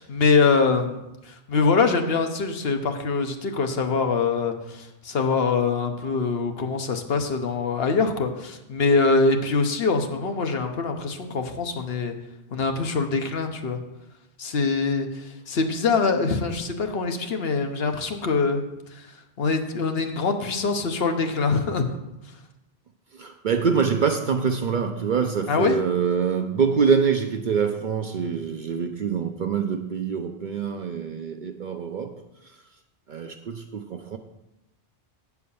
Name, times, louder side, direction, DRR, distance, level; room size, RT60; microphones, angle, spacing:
voice 1, 0.0-12.1 12.5-13.8 14.4-18.6 18.9-19.1 19.4-21.9 25.5-25.8, left 4 dB, 60° left, 5 dB, 1.1 m, -24 dB
voice 2, 23.2-32.2 33.1-34.2, right 6 dB, 55° right, 6 dB, 0.6 m, -25 dB
8.6 x 4.7 x 6.9 m, 0.93 s
omnidirectional pair, 1.2 m